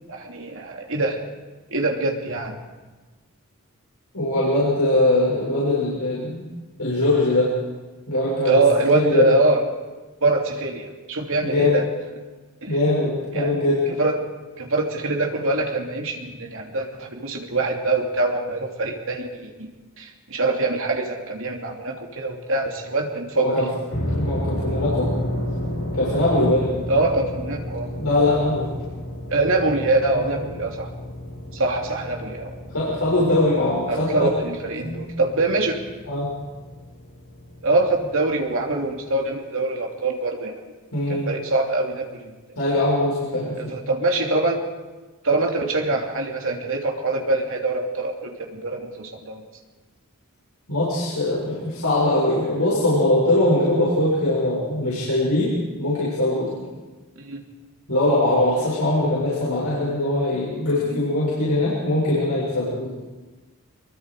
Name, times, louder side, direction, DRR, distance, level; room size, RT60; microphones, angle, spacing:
voice 1, 0.1-1.2 1.7-2.5 8.4-9.6 10.2-11.8 12.6-12.7 13.3-13.5 14.0-14.3 14.6-19.7 20.0-23.6 26.9-27.9 29.3-30.9 31.5-32.5 33.9-35.8 37.6-40.6 41.1-42.3 43.6-44.6 45.2-49.4 57.2-57.4 60.9-61.0, right 2 dB, 60° right, 1 dB, 3.0 m, -24 dB
voice 2, 4.1-6.4 6.8-7.5 8.1-8.6 8.9-9.3 11.4-11.8 12.7-13.8 23.3-23.7 24.1-25.1 25.9-26.7 28.0-28.7 30.1-30.3 32.7-34.3 34.8-35.0 36.1-36.3 40.9-41.3 42.5-43.8 50.7-56.6 57.9-62.9, left 1 dB, 85° left, -7 dB, 6.8 m, -21 dB
sound 1, 23.9-39.1, left 1 dB, 60° left, 7.2 m, -32 dB
25.5 x 22.5 x 5.0 m, 1.3 s
head